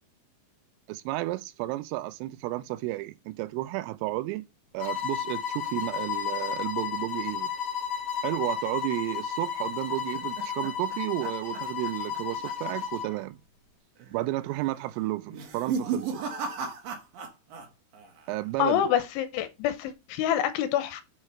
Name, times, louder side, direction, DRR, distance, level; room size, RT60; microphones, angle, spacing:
voice 1, 0.9-4.4 4.7-7.5 8.2-13.4 14.1-16.2 18.3-18.8, right 18 dB, 90° right, 3.2 m, -32 dB
sound 1, 4.8-13.2, left 8 dB, 50° left, 2.3 m, -33 dB
sound 2, 9.7-12.2 12.4-12.8 13.1-13.2 14.0-14.4 15.2-17.7 17.9-18.5, right 6 dB, 65° right, 2.4 m, -35 dB
voice 2, 18.6-21.0, left 11 dB, 80° left, 2.9 m, -26 dB
7.3 x 4.9 x 4.2 m
omnidirectional pair, 5.7 m